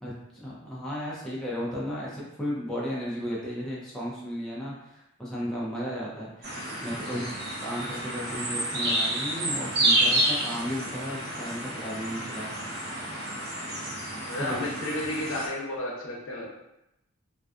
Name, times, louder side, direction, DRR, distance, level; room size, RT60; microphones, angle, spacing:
voice 1, 0.0-6.5 6.8-7.2 7.6-12.5 14.4-14.7, equal, ahead, -7 dB, 0.4 m, -34 dB
sound 1, 6.4-15.5, right 1 dB, 50° right, 0.7 m, -29 dB
voice 2, 14.3-16.5, left 1 dB, 65° left, -3 dB, 0.6 m, -32 dB
2.5 x 2.3 x 2.3 m, 0.86 s
head